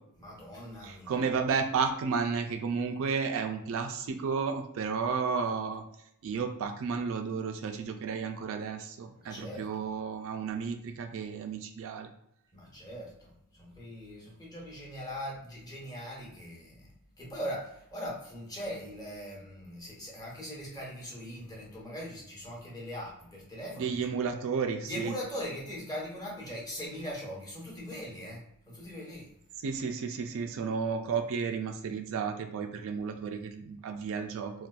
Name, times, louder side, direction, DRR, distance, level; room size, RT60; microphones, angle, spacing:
voice 1, 0.1-1.4 9.1-9.9 12.5-24.2 24.8-29.3, equal, 15° left, -4 dB, 0.9 m, -41 dB
voice 2, 0.8-5.8 6.2-12.1 23.8-25.1 29.6-34.5, right 5 dB, 65° right, 6 dB, 0.3 m, -32 dB
4.0 x 2.2 x 2.3 m, 0.76 s
head